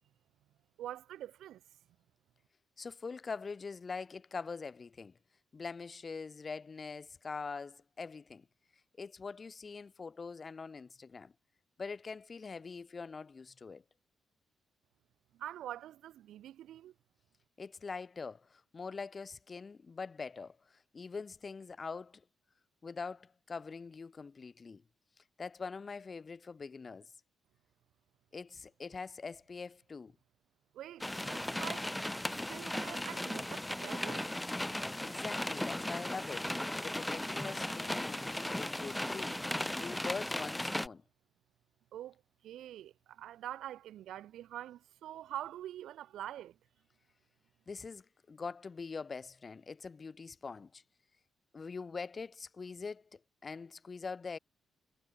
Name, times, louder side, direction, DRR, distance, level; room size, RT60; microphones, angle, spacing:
voice 1, 0.8-1.6 15.3-16.9 30.7-31.9 32.5-34.3 41.9-46.6, right 12 dB, 85° right, 6.1 m, -45 dB
voice 2, 2.8-5.2 5.5-8.5 9.0-11.3 11.8-13.8 17.6-22.2 22.8-24.8 25.4-27.1 28.3-30.2 35.0-41.0 47.7-50.8 51.5-54.4, left 4 dB, 30° left, 3.5 m, -43 dB
sound 1, 31.0-40.9, left 1 dB, 5° left, 0.5 m, -37 dB
cardioid pair, 145°, 0 cm